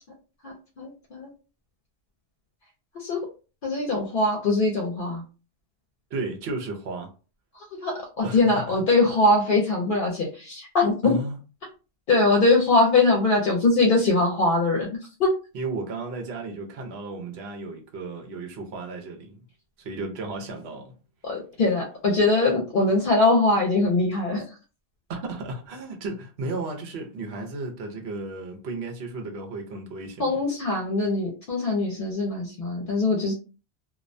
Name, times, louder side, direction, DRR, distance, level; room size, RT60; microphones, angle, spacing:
voice 1, 0.4-1.3 2.9-3.2 3.6-5.2 7.5-11.2 12.1-14.9 15.2-15.3 21.2-24.4 30.2-33.3, left 2 dB, 60° left, 0.7 m, -22 dB
voice 2, 6.1-7.1 8.2-8.8 11.0-11.4 15.5-19.4 19.8-21.0 25.1-30.4, right 3 dB, 85° right, 0.9 m, -34 dB
2.3 x 2.1 x 2.5 m
omnidirectional pair, 1.0 m